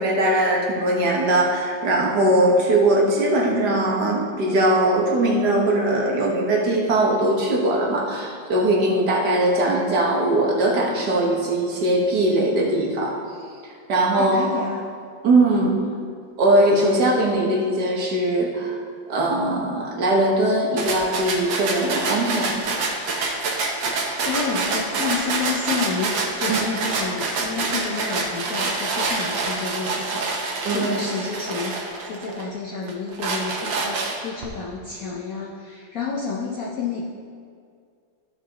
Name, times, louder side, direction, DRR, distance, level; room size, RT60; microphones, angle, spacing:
voice 1, 0.0-13.2 13.6-14.7 15.2-15.8 16.4-18.8 19.1-22.6 26.5-26.6 30.7-30.9, right 1 dB, 60° right, -1 dB, 1.8 m, -20 dB
voice 2, 14.2-14.8 15.6-15.7 24.2-37.1, left 4 dB, 55° left, -4 dB, 1.2 m, -30 dB
sound 1, 20.8-32.4 32.9-34.4, right 3 dB, 75° right, 1.8 m, -26 dB
14.0 x 6.2 x 3.0 m, 2.2 s
omnidirectional pair, 2.1 m